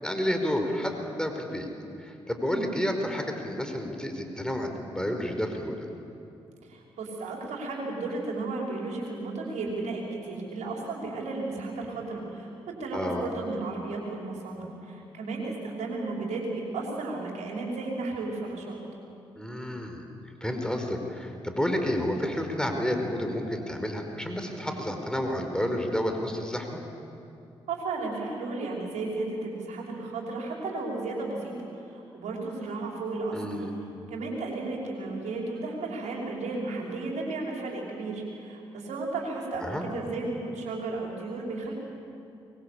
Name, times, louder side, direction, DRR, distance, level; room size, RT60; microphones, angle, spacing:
voice 1, 0.0-1.7 2.0-5.8 12.9-13.3 19.4-20.0 20.4-26.8 33.3-33.7 39.6-39.9, equal, 5° left, 4 dB, 4.9 m, -30 dB
voice 2, 6.6-18.8 27.7-33.7 34.1-41.7, right 3 dB, 70° right, -2 dB, 5.7 m, -34 dB
24.5 x 22.0 x 8.6 m, 2.6 s
hypercardioid pair, 40°, 13 cm